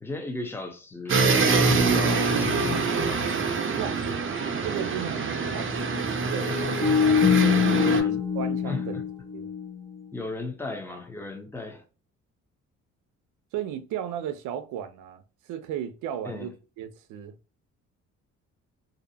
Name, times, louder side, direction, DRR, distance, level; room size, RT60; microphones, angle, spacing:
voice 1, 0.0-3.2 7.8-8.2 8.6-9.0 10.1-11.8 16.2-16.5, left 2 dB, 10° left, 0.6 m, -36 dB
sound 1, 1.1-8.0, right 4 dB, 45° right, 0.6 m, -25 dB
sound 2, 1.2-3.8 4.1-4.2 6.4-10.0, left 7 dB, 55° left, 1.0 m, -26 dB
voice 2, 3.8-4.1 4.6-6.5 7.4-8.1 8.3-9.0 9.3-9.5 13.5-17.4, right 9 dB, 90° right, 0.5 m, -35 dB
2.6 x 2.0 x 2.6 m
cardioid pair, 90°, 30 cm